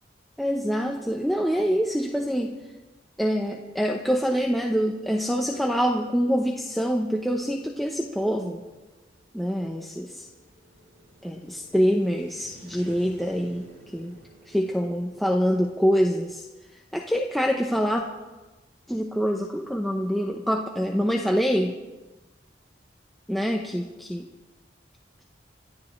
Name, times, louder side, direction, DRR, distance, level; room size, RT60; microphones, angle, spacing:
voice 1, 0.4-2.5 3.2-8.6 9.3-10.3 11.2-13.7 13.9-14.2 14.5-16.4 16.9-18.0 18.9-21.8 23.3-23.8 24.1-24.2, equal, ahead, 0 dB, 0.9 m, -25 dB
sound 1, 6.7-15.7, right 1 dB, 75° right, 7.2 m, -54 dB
26.5 x 14.5 x 3.2 m, 1.2 s
head